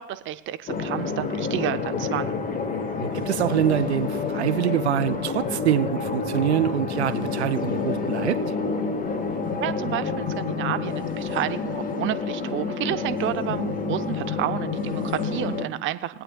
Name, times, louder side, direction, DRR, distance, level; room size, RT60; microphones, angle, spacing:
voice 1, 0.0-2.4 9.6-16.2, right 13 dB, 40° right, 12 dB, 0.6 m, -30 dB
sound 1, 0.7-15.6, left 4 dB, 25° left, 1.3 m, -28 dB
voice 2, 3.0-8.4, right 11 dB, 85° right, 14 dB, 0.5 m, -25 dB
22.0 x 8.7 x 2.3 m, 0.81 s
hypercardioid pair, 80°, 32 cm